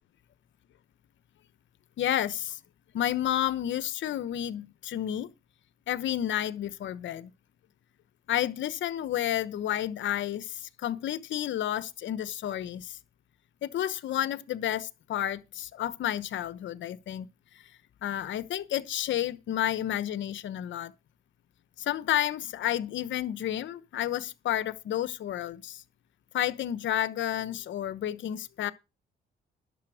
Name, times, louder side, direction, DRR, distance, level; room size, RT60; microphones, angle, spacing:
voice 1, 2.0-2.6 2.9-5.3 5.9-7.3 8.3-13.0 13.6-17.3 18.0-20.9 21.8-25.8 26.3-28.7, left 11 dB, 70° left, 1.0 m, -31 dB
11.5 x 6.9 x 6.3 m
cardioid pair, 90°, 20 cm